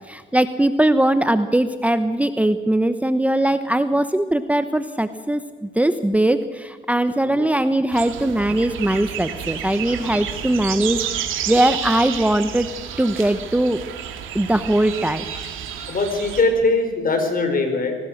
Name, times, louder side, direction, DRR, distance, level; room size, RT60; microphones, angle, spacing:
voice 1, 0.1-12.7 13.0-13.8 14.3-15.2, right 1 dB, 5° right, 10 dB, 1.0 m, -20 dB
voice 2, 7.2-7.5 15.9-17.9, left 3 dB, 45° left, 6 dB, 4.8 m, -21 dB
sound 1, 7.9-16.4, right 9 dB, 85° right, 2.6 m, -30 dB
25.0 x 19.0 x 6.5 m, 1.4 s
cardioid pair, 90°, 20 cm